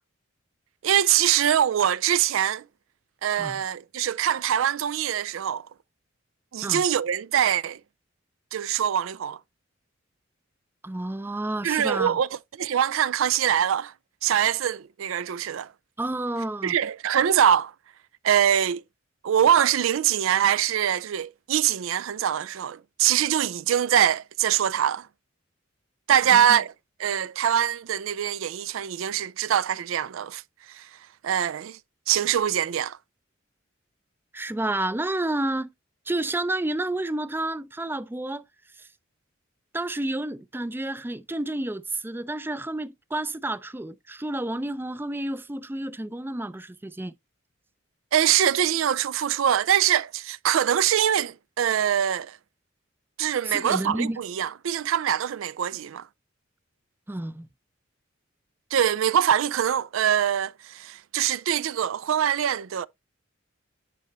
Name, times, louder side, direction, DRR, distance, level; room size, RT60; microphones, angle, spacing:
voice 1, 0.8-2.7 3.2-5.6 6.5-7.8 8.5-9.4 11.6-12.3 12.6-13.9 14.2-15.7 16.6-17.7 18.2-18.8 19.2-25.1 26.1-26.7 27.0-30.4 30.7-30.9 31.2-31.8 32.1-33.0 48.1-52.4 53.2-56.1 58.7-62.9, right 9 dB, 85° right, 0.4 m, -23 dB
voice 2, 10.8-12.2 16.0-16.7 26.3-26.4 34.3-35.7 36.1-38.4 39.7-47.1 53.5-54.2 57.1-57.5, right 1 dB, 10° right, 0.4 m, -30 dB
10.5 x 4.2 x 3.0 m
head